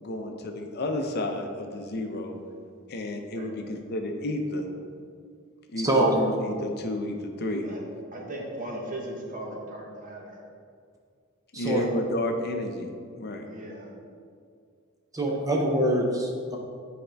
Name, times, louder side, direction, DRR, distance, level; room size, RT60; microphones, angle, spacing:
voice 1, 0.0-2.4 2.9-4.7 5.7-7.7 11.6-13.4, left 1 dB, 50° left, 4 dB, 0.6 m, -31 dB
voice 2, 5.8-6.2 11.5-11.8 15.2-16.6, right 1 dB, 15° right, -1 dB, 0.6 m, -24 dB
voice 3, 8.1-10.4 13.5-13.9, right 1 dB, 40° right, -1 dB, 1.1 m, -37 dB
8.9 x 4.4 x 3.4 m, 2.2 s
head